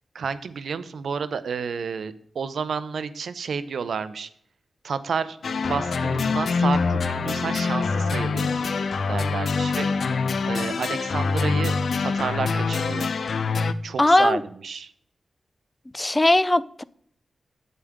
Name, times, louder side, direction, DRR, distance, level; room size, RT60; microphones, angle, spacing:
voice 1, 0.1-4.3 4.8-5.4 5.6-8.7 9.1-11.7 12.0-13.1 13.8-14.9, right 6 dB, 80° right, 0.7 m, -30 dB
sound 1, 5.4-13.7, left 4 dB, 70° left, 0.6 m, -25 dB
voice 2, 14.0-14.4 15.9-16.8, left 1 dB, 15° left, 0.4 m, -19 dB
8.9 x 8.3 x 3.6 m
wide cardioid pair, 100°, 0 cm